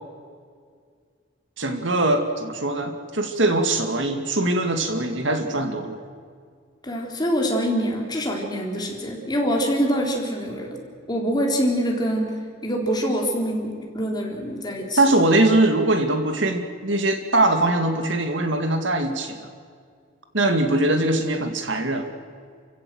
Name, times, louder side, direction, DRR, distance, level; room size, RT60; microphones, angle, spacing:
voice 1, 1.6-6.0 15.0-19.4 20.3-22.1, right 2 dB, 65° right, 6 dB, 2.3 m, -22 dB
voice 2, 6.8-10.8 11.1-15.0, equal, 20° left, 0 dB, 4.1 m, -25 dB
30.0 x 16.0 x 7.9 m, 2.1 s
head